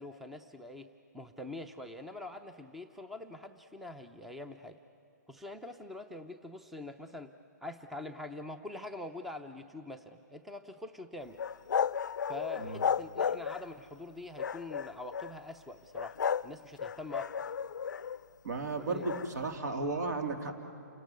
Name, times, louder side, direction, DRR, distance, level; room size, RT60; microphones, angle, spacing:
voice 1, 0.0-4.8 5.3-7.3 7.6-11.4 12.3-16.2 16.4-17.5 18.8-19.1, left 2 dB, ahead, 8 dB, 0.5 m, -44 dB
sound 1, 11.4-13.8 14.4-15.3 15.9-16.5 16.8-18.2 19.0-19.3, left 7 dB, 90° left, 0.5 m, -33 dB
voice 2, 18.4-20.5, right 3 dB, 70° right, 5 dB, 3.3 m, -34 dB
29.0 x 19.0 x 9.5 m, 2.8 s
hypercardioid pair, 155°, 10 cm